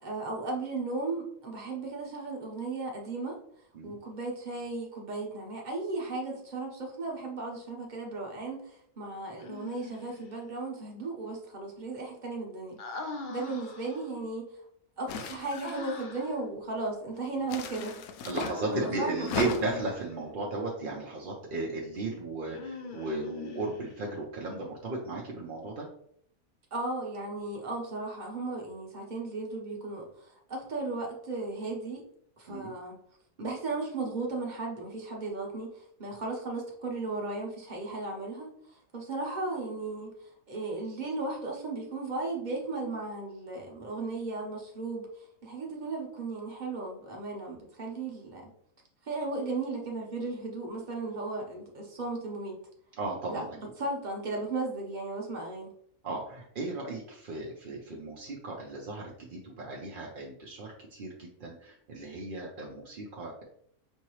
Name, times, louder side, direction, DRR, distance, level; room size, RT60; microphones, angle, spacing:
voice 1, 0.0-3.4 3.8-12.8 13.3-14.6 15.0-18.0 18.6-19.5 26.7-32.0 32.4-33.0 33.4-45.1 45.4-48.5 49.0-52.6 53.3-55.7, right 3 dB, 35° right, 0 dB, 1.0 m, -36 dB
Human voice, 9.4-10.3 12.8-14.1 15.6-16.4 18.4-20.2 22.4-24.1, left 4 dB, 60° left, 0.5 m, -42 dB
sound 1, 15.1-16.0 17.4-18.6 19.2-19.9, left 5 dB, 80° left, 1.0 m, -36 dB
voice 2, 18.3-25.9 32.5-32.7 53.0-53.5 56.0-63.4, right 3 dB, 50° right, -2 dB, 0.6 m, -35 dB
5.5 x 2.9 x 3.0 m, 0.68 s
omnidirectional pair, 1.5 m